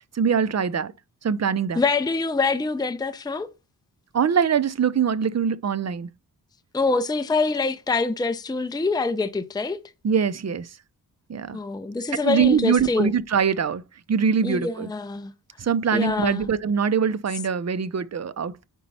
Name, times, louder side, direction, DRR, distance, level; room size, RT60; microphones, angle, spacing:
voice 1, 0.1-0.9 1.2-1.8 4.1-6.1 10.0-10.7 11.3-11.6 12.2-13.8 14.1-14.9 15.6-18.7, right 7 dB, 45° right, 0.6 m, -23 dB
voice 2, 1.8-3.5 6.7-9.8 11.5-13.1 14.4-15.3 15.9-16.5, left 4 dB, 10° left, 0.5 m, -25 dB
5.2 x 4.6 x 5.4 m
wide cardioid pair, 100°, 37 cm